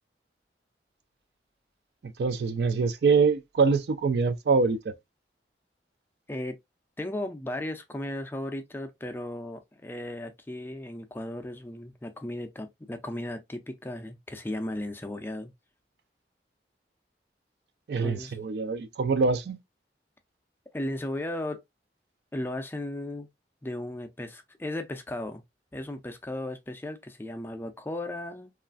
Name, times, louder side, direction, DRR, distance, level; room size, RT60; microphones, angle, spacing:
voice 1, 2.0-4.9 17.9-19.6, right 4 dB, 65° right, 0.4 m, -24 dB
voice 2, 7.0-15.5 18.0-18.5 20.7-21.6 22.3-23.3 23.6-25.4 25.7-28.5, left 1 dB, 10° left, 0.4 m, -36 dB
3.0 x 2.4 x 2.4 m
head